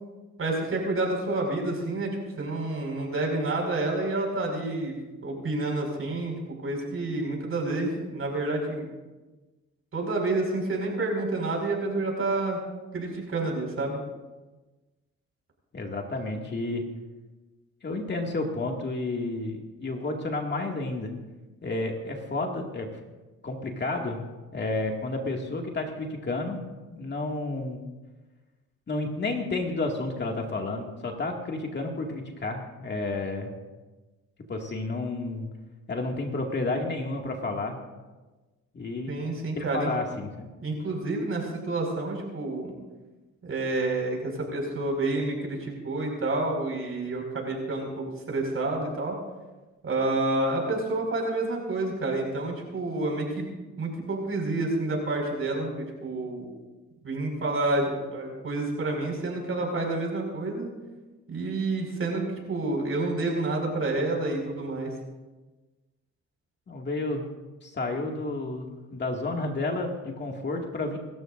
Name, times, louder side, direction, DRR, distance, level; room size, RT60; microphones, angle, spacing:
voice 1, 0.4-4.9 5.2-8.9 9.9-12.6 12.9-14.0 39.1-39.9 40.6-42.7 43.4-49.2 49.8-53.5 53.8-56.5 57.0-60.7 61.3-64.9, right 2 dB, 45° right, 0 dB, 5.6 m, -29 dB
voice 2, 15.7-16.8 17.8-21.1 21.6-22.9 23.4-24.3 24.5-26.6 26.9-27.8 28.9-33.5 34.5-35.5 35.9-37.8 38.7-39.1 39.6-40.5 66.7-67.2 67.6-71.0, left 2 dB, 35° left, 1 dB, 2.3 m, -31 dB
27.5 x 13.5 x 2.6 m, 1.2 s
cardioid pair, 90°, 30 cm